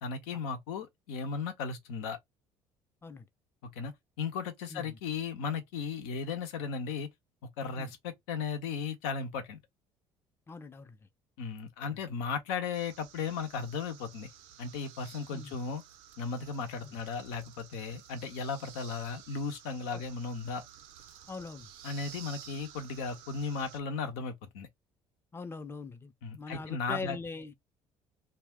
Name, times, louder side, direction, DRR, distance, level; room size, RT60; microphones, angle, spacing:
voice 1, 0.0-2.2 3.6-7.1 7.6-9.6 11.4-14.3 14.6-15.8 16.2-20.6 21.8-24.7 26.2-27.2, left 5 dB, 85° left, 0.7 m, -36 dB
voice 2, 10.5-11.0 11.8-12.0 15.3-15.6 16.8-17.0 19.9-20.0 21.3-21.7 25.3-27.5, left 3 dB, 20° left, 0.5 m, -42 dB
sound 1, 12.7-23.8, right 10 dB, 80° right, 0.5 m, -53 dB
2.3 x 2.0 x 3.5 m
supercardioid pair, 70°, 13 cm